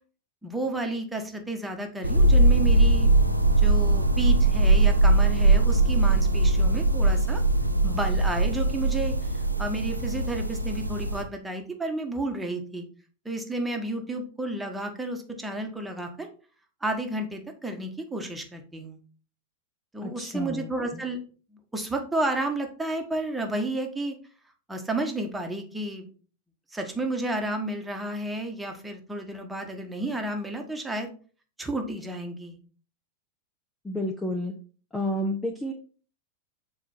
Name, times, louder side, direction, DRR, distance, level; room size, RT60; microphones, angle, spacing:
voice 1, 0.4-3.1 3.6-7.4 7.8-12.8 13.2-16.3 16.8-19.0 19.9-21.2 21.5-24.2 24.7-26.1 26.7-31.1 31.6-32.6, right 1 dB, 10° right, 4 dB, 1.5 m, -31 dB
sound 1, 2.0-11.2, right 2 dB, 90° right, 0.7 m, -21 dB
voice 2, 20.0-20.7 33.8-34.5 34.9-35.7, left 1 dB, 10° left, 3 dB, 0.9 m, -30 dB
7.4 x 4.6 x 4.4 m, 0.39 s
figure-of-eight pair, 90°, 0 cm